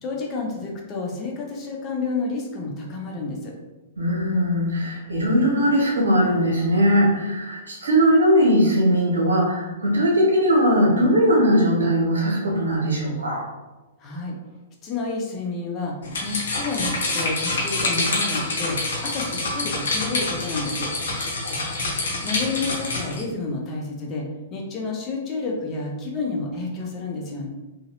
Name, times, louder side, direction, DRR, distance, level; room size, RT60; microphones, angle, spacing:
voice 1, 0.0-3.5 14.0-14.4 14.8-15.9 16.2-18.8 19.0-20.9 22.2-24.2 24.5-27.5, left 3 dB, 30° left, -1 dB, 0.7 m, -30 dB
voice 2, 4.0-13.4 21.1-21.7, equal, 80° right, -2 dB, 0.9 m, -20 dB
sound 1, 16.0-23.2, left 2 dB, 65° left, 0.8 m, -26 dB
2.9 x 2.7 x 2.5 m, 1.1 s
figure-of-eight pair, 110°, 0 cm